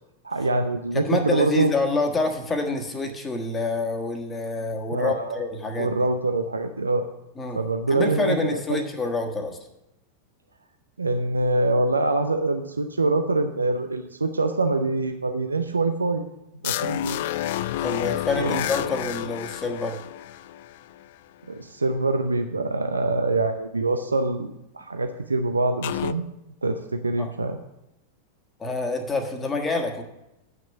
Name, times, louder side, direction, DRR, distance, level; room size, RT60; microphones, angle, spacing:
voice 1, 0.2-1.7 4.9-5.4 5.8-7.1 7.5-8.8 11.0-16.2 16.6-17.2 18.4-18.7 21.5-26.2 26.6-27.6, right 2 dB, 80° right, 7 dB, 0.6 m, -24 dB
voice 2, 0.9-5.9 7.4-7.6 7.9-9.6 17.8-20.0 27.2-27.3 28.6-30.0, left 3 dB, 15° left, 4 dB, 1.5 m, -27 dB
sound 1, 16.6-21.1 25.8-26.1, left 13 dB, 50° left, 0.3 m, -29 dB
8.2 x 6.2 x 7.5 m, 0.89 s
figure-of-eight pair, 90°, 0 cm